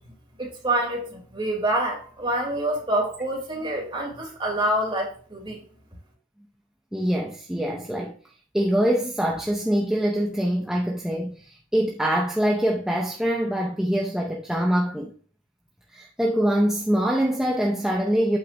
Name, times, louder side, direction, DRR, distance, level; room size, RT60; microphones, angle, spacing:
voice 1, 0.4-5.6, right 1 dB, 25° right, 2.9 m, -26 dB
voice 2, 6.9-8.2 8.5-15.1 15.9-18.4, equal, 5° right, 0.7 m, -24 dB
8.8 x 8.4 x 2.6 m
head